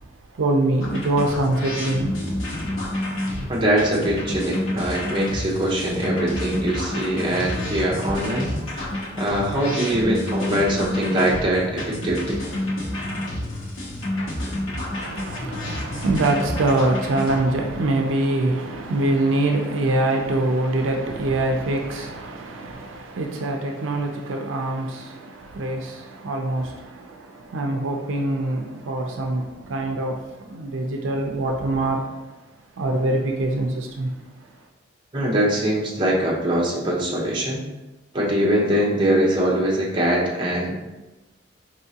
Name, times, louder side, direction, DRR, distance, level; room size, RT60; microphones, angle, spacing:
voice 1, 0.3-2.1 15.0-32.1 32.8-34.1, right 2 dB, 80° right, 0.5 m, -24 dB
sound 1, 0.8-17.4, left 1 dB, 90° left, 1.2 m, -29 dB
voice 2, 3.5-8.9 9.2-12.4 35.1-37.6 38.1-40.7, right 1 dB, 25° right, 0.8 m, -22 dB
4.6 x 3.0 x 2.8 m
head